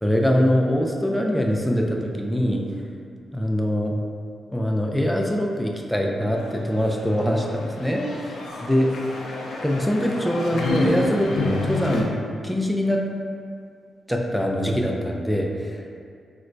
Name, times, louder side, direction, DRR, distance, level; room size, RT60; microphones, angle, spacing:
voice 1, 0.0-2.6 3.3-4.0 4.5-8.9 9.6-12.1 12.4-13.0 14.1-15.9, equal, ahead, 0 dB, 0.3 m, -23 dB
sound 1, 6.4-12.0, left 2 dB, 70° left, 0.4 m, -29 dB
4.2 x 2.1 x 2.5 m, 2.2 s
cardioid pair, 115°, 0 cm